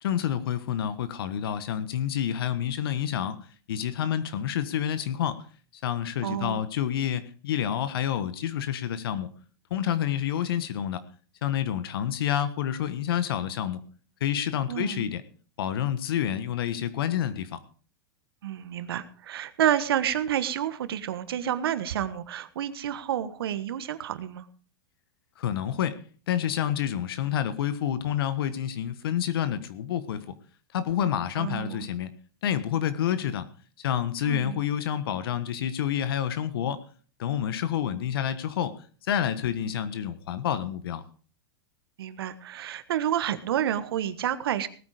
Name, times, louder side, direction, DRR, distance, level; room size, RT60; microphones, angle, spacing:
voice 1, 0.0-5.4 5.8-9.3 9.7-11.0 11.4-13.8 14.2-15.2 15.6-17.6 25.4-26.0 26.3-30.3 30.7-32.1 32.4-33.5 33.8-36.8 37.2-41.0, left 10 dB, 75° left, 13 dB, 1.4 m, -28 dB
voice 2, 6.2-6.6 14.7-15.1 18.4-24.5 31.4-31.9 34.2-34.6 42.0-44.7, right 10 dB, 80° right, 13 dB, 1.5 m, -29 dB
18.5 x 8.8 x 5.0 m, 0.40 s
supercardioid pair, 140°, 12 cm